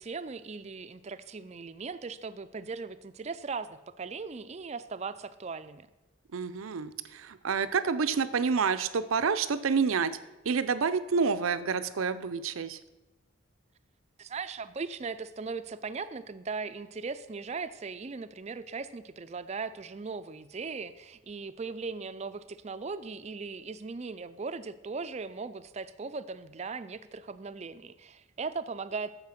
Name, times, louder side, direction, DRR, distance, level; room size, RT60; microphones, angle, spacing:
voice 1, 0.0-5.9 14.2-29.1, right 4 dB, 35° right, 13 dB, 0.4 m, -38 dB
voice 2, 6.3-10.1 10.4-12.8, right 5 dB, 85° right, 13 dB, 0.6 m, -28 dB
9.6 x 7.0 x 5.8 m, 1.0 s
head